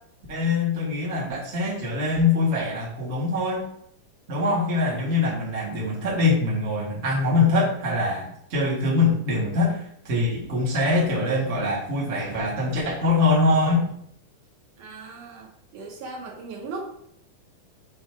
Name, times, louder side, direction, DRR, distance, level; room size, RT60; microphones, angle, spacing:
voice 1, 0.3-3.7 4.3-13.9, left 3 dB, 40° right, -5 dB, 0.9 m, -23 dB
voice 2, 14.8-15.5 15.7-16.9, right 3 dB, 70° right, -1 dB, 2.2 m, -37 dB
5.5 x 3.9 x 4.4 m, 0.69 s
omnidirectional pair, 4.1 m